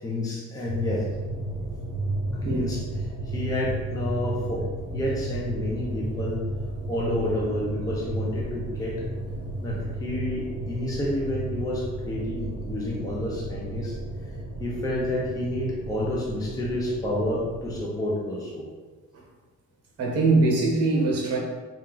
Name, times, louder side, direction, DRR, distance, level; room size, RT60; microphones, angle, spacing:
voice 1, 0.0-1.0 2.4-2.8 3.2-4.6 4.9-6.4 6.9-9.0 9.6-14.0 14.6-18.6, left 1 dB, 10° left, -4 dB, 0.5 m, -29 dB
sound 1, 0.6-17.8, right 1 dB, 55° left, 1.0 m, -33 dB
voice 2, 20.0-21.4, right 3 dB, 50° right, -1 dB, 1.0 m, -22 dB
4.3 x 2.4 x 3.8 m, 1.3 s
cardioid pair, 170°, 31 cm